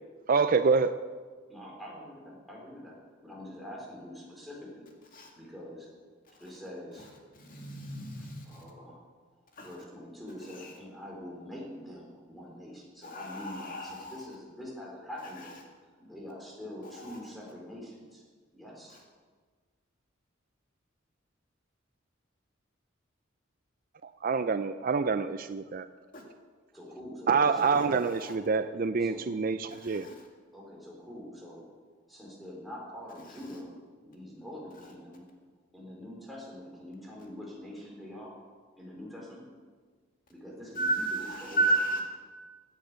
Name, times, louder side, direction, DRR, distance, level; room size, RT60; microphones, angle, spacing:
voice 1, 0.3-0.9 24.2-25.9 27.3-30.1, right 5 dB, 45° right, 11 dB, 0.4 m, -26 dB
voice 2, 1.5-4.9 5.4-5.9 6.4-7.1 8.2-9.0 9.6-15.5 16.0-18.2 18.5-19.0 26.7-27.8 29.0-29.2 30.5-31.7 32.1-33.7 34.0-35.2 35.7-38.3 38.8-39.4 40.3-41.6, left 1 dB, ahead, -4 dB, 4.3 m, -45 dB
voice 3, 7.4-8.5 9.6-9.7 10.6-10.7 13.0-14.1 26.1-26.2 29.7-30.1 40.8-42.0, right 2 dB, 45° left, 1 dB, 2.3 m, -32 dB
16.5 x 10.5 x 6.4 m, 1.5 s
head